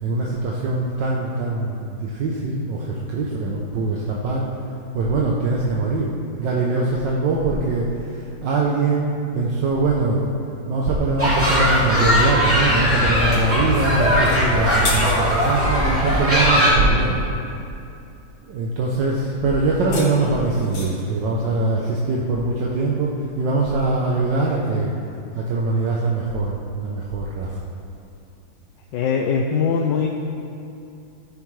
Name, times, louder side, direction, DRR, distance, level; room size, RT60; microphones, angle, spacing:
voice 1, 0.0-4.5 4.9-10.3 10.7-17.2 18.5-24.9 25.3-27.6, right 3 dB, 70° right, -3 dB, 1.5 m, -22 dB
Children Playing, 11.2-16.7, equal, 5° right, 2.4 m, -19 dB
sound 1, 14.2-15.7 19.6-21.1, left 2 dB, 55° left, 1.9 m, -31 dB
voice 2, 28.9-30.1, left 6 dB, 75° left, 1 dB, 1.3 m, -21 dB
13.0 x 9.0 x 3.2 m, 2.6 s
omnidirectional pair, 2.1 m